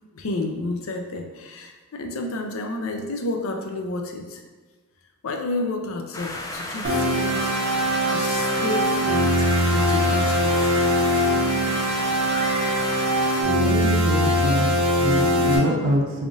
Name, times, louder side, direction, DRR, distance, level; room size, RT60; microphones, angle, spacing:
voice 1, 0.1-4.4 5.2-7.5 8.1-10.7 15.5-16.0, left 2 dB, 75° left, 3 dB, 0.5 m, -30 dB
sound 1, 6.1-13.4, left 1 dB, 15° left, 0.4 m, -33 dB
sound 2, 6.8-15.6, equal, 90° right, 1.1 m, -21 dB
voice 2, 13.4-16.3, right 1 dB, 70° right, -2 dB, 0.7 m, -25 dB
3.5 x 3.4 x 2.6 m, 1.3 s
head